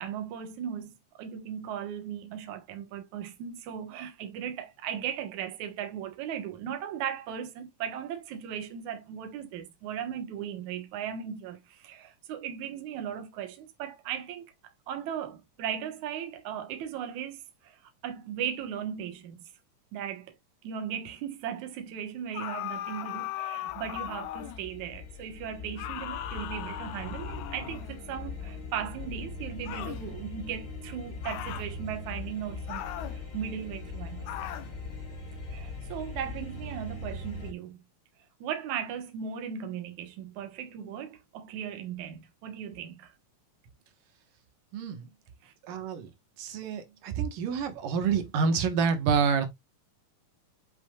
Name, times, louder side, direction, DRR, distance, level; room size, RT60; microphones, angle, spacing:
voice 1, 0.0-14.5 14.9-19.4 19.9-20.4 20.6-32.8 33.1-34.3 35.5-37.8 38.4-43.1 45.4-45.5, right 9 dB, 70° right, 2.6 m, -37 dB
sound 1, 22.3-24.7 25.8-28.0 29.6-30.0 31.2-31.7 32.7-33.2 34.3-34.7, left 13 dB, 75° left, 2.1 m, -38 dB
sound 2, 23.7-37.5, left 3 dB, 40° left, 2.6 m, -40 dB
voice 2, 45.7-46.1 46.4-49.5, right 6 dB, 85° right, 3.0 m, -27 dB
8.0 x 5.6 x 2.3 m
omnidirectional pair, 3.7 m